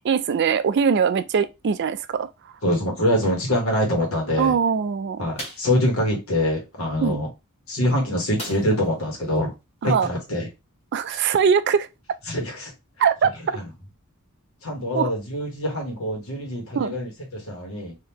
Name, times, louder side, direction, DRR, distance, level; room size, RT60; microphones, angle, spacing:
voice 1, 0.0-2.3 4.4-5.3 7.0-7.2 9.8-10.1 10.9-11.9 13.0-13.3 14.9-15.1 16.8-17.0, right 6 dB, 50° right, 0.3 m, -21 dB
voice 2, 2.6-4.5 5.2-7.3 7.7-9.5 9.8-10.5 12.3-12.7 13.5-13.6 14.6-18.0, left 1 dB, 65° left, 1.4 m, -24 dB
sound 1, 5.4-5.8 8.4-9.0 9.3-9.4 9.8-10.0, equal, 25° left, 1.1 m, -37 dB
3.6 x 2.7 x 2.9 m
head